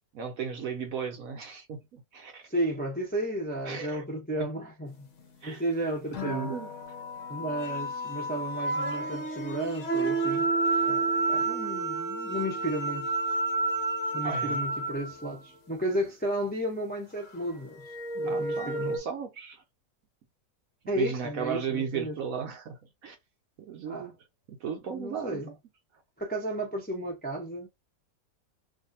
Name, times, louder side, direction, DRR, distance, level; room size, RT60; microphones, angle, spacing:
voice 1, 0.1-2.5 3.7-4.0 4.4-4.5 5.4-5.6 6.1-6.7 14.2-14.6 18.2-19.6 21.0-23.2 23.6-24.1 24.5-25.4, right 7 dB, 65° right, 0.9 m, -35 dB
voice 2, 2.4-5.1 5.4-6.5 7.3-10.5 10.8-13.1 14.1-19.0 20.9-22.2 23.9-24.1 24.9-25.5 26.2-27.7, right 1 dB, 15° left, 0.3 m, -33 dB
sound 1, 6.1-15.3 17.8-19.0, right 3 dB, 60° left, 0.9 m, -30 dB
2.7 x 2.5 x 2.7 m
omnidirectional pair, 1.9 m